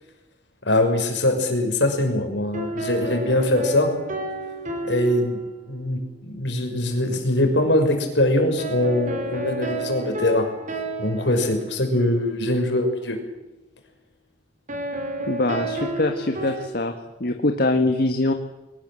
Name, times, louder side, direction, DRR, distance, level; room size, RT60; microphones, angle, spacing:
voice 1, 0.7-3.9 4.9-5.4 5.7-10.5 11.0-13.2, left 1 dB, 70° left, 4 dB, 5.8 m, -22 dB
sound 1, 2.5-5.9 8.6-12.4 14.7-16.7, right 1 dB, 45° right, 4.2 m, -31 dB
voice 2, 15.3-16.9 17.2-18.3, left 2 dB, 55° left, 5 dB, 1.8 m, -23 dB
22.5 x 19.5 x 7.7 m, 1.0 s
head